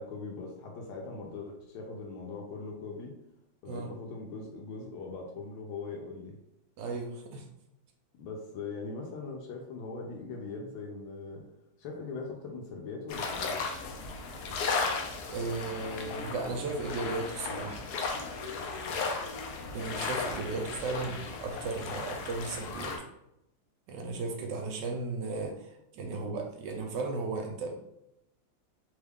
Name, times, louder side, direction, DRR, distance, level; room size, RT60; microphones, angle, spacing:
voice 1, 0.0-3.1 3.6-6.4 8.2-11.5 11.8-13.7 21.0-21.2 26.1-26.3, left 3 dB, 90° left, 0 dB, 1.3 m, -41 dB
voice 2, 6.8-7.4 15.3-17.8 19.7-23.0 23.9-27.8, right 3 dB, 75° right, 2 dB, 1.2 m, -35 dB
sound 1, 13.1-23.0, left 4 dB, 70° left, 1.0 m, -35 dB
3.2 x 2.3 x 3.4 m, 0.84 s
omnidirectional pair, 2.1 m